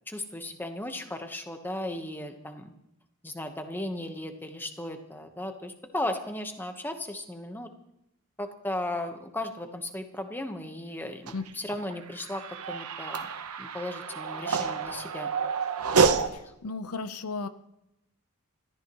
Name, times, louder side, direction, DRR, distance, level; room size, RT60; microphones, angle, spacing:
voice 1, 0.1-2.7 3.2-7.7 8.4-13.3 13.6-15.3 16.1-16.4, left 1 dB, 10° left, 6 dB, 1.2 m, -36 dB
sound 1, 11.3-16.3, right 5 dB, 85° right, 1.0 m, -28 dB
voice 2, 16.3-17.5, left 3 dB, 90° left, 11 dB, 0.8 m, -35 dB
28.0 x 13.5 x 3.1 m, 0.86 s
head